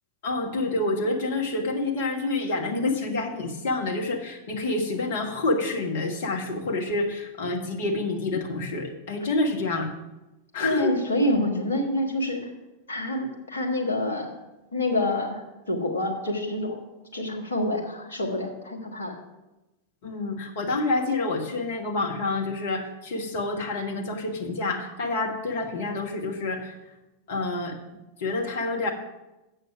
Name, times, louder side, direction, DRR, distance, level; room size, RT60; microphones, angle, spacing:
voice 1, 0.2-9.9 10.5-10.9 20.0-26.7 27.3-27.8 28.2-28.9, left 2 dB, 55° left, 3 dB, 1.4 m, -28 dB
voice 2, 10.6-12.5 12.9-14.3 14.7-16.8 17.1-19.2, left 1 dB, 70° left, 0 dB, 1.7 m, -27 dB
7.9 x 6.4 x 6.0 m, 1.0 s
figure-of-eight pair, 90°, 0 cm